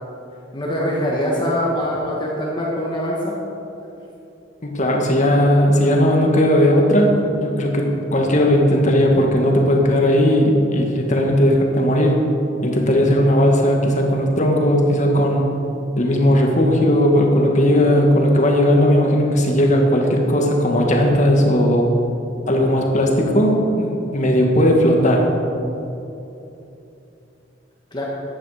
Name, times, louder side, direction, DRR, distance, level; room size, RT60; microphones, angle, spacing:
voice 1, 0.5-3.4 27.9-28.0, equal, 25° left, -4 dB, 1.6 m, -23 dB
voice 2, 4.6-12.2 12.6-15.5 16.0-21.9 22.5-25.3, equal, 40° left, 1 dB, 1.9 m, -17 dB
14.5 x 10.5 x 5.1 m, 2.9 s
head